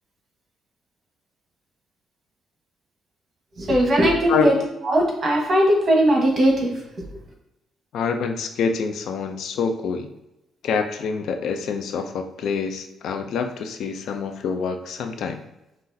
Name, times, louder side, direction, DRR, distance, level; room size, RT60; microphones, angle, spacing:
voice 1, 3.6-4.5 4.8-6.7, right 1 dB, 40° right, -1 dB, 1.2 m, -19 dB
voice 2, 7.9-10.1 10.6-15.4, left 5 dB, 70° left, 6 dB, 0.4 m, -26 dB
5.7 x 2.5 x 2.7 m, 0.91 s
cardioid pair, 130°, 0 cm